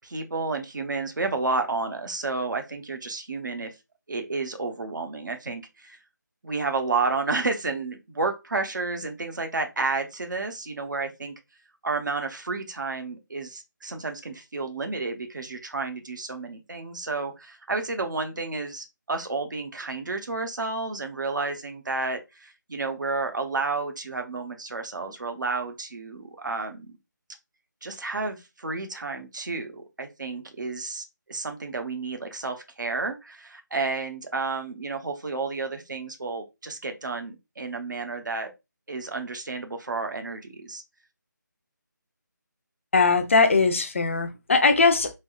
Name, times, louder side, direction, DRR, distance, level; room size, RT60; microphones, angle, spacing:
voice 1, 0.0-3.7 4.1-6.0 6.4-11.3 11.8-27.0 27.8-38.5 38.9-40.8, right 3 dB, 70° right, 0.8 m, -31 dB
voice 2, 42.9-45.1, left 4 dB, 40° left, 0.4 m, -20 dB
3.4 x 2.7 x 2.3 m
figure-of-eight pair, 165°, 10 cm